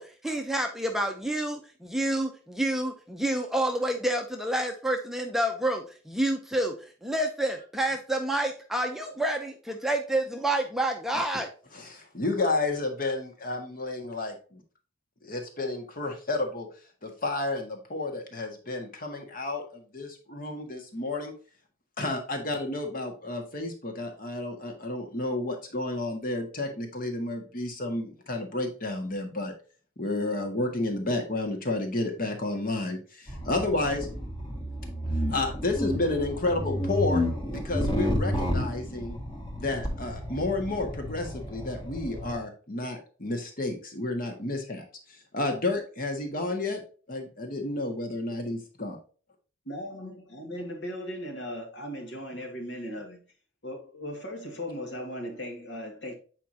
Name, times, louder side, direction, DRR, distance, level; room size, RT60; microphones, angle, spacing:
voice 1, 0.0-11.5, right 1 dB, ahead, 0.7 m, -29 dB
voice 2, 11.7-14.6 15.2-16.7 17.0-21.3 22.0-29.5 30.0-34.1 35.3-37.2 37.5-39.2 39.6-46.8 47.1-49.0, left 2 dB, 45° left, 1.6 m, -31 dB
sound 1, 33.3-42.4, left 1 dB, 25° left, 1.6 m, -31 dB
voice 3, 49.7-53.2 53.6-56.2, equal, 65° left, 1.9 m, -37 dB
8.3 x 4.6 x 2.8 m
head